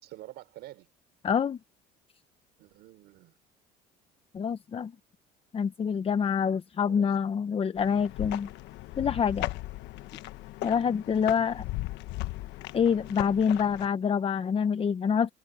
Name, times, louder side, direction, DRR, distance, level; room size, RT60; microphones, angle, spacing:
voice 1, 0.0-0.9 2.6-3.4 6.8-7.2, right 15 dB, 70° right, 4.8 m, -48 dB
voice 2, 1.2-1.6 4.3-4.9 5.5-8.5 9.0-9.5 10.6-11.7 12.7-15.3, left 7 dB, 30° left, 1.0 m, -26 dB
sound 1, 7.8-13.9, left 17 dB, 75° left, 1.2 m, -37 dB
supercardioid pair, 100°, 18 cm